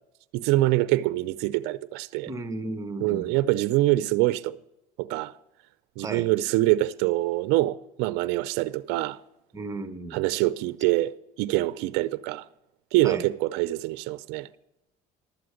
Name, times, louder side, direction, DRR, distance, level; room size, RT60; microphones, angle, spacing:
voice 1, 0.3-2.3 3.0-4.6 5.0-5.3 6.0-9.2 10.1-12.4 12.9-14.5, right 17 dB, 75° right, 0.4 m, -25 dB
voice 2, 2.3-3.4 6.0-6.3 9.5-10.3 13.0-13.3, right 3 dB, 20° right, 0.9 m, -34 dB
12.0 x 7.7 x 6.3 m
cardioid pair, 115°, 17 cm